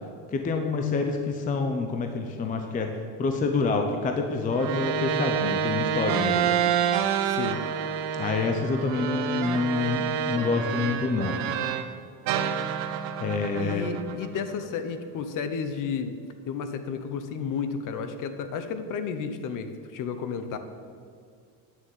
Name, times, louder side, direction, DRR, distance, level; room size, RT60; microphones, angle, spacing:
voice 1, 0.3-2.9 3.2-6.6 8.1-11.4 13.2-13.9, left 4 dB, 15° left, 5 dB, 0.6 m, -27 dB
sound 1, 4.5-11.9 12.3-14.6, right 8 dB, 75° right, 1.0 m, -28 dB
voice 2, 7.3-7.6 13.6-16.1 16.5-20.6, left 6 dB, 40° left, 9 dB, 1.0 m, -32 dB
9.3 x 7.2 x 8.9 m, 2.2 s
cardioid pair, 165°, 47 cm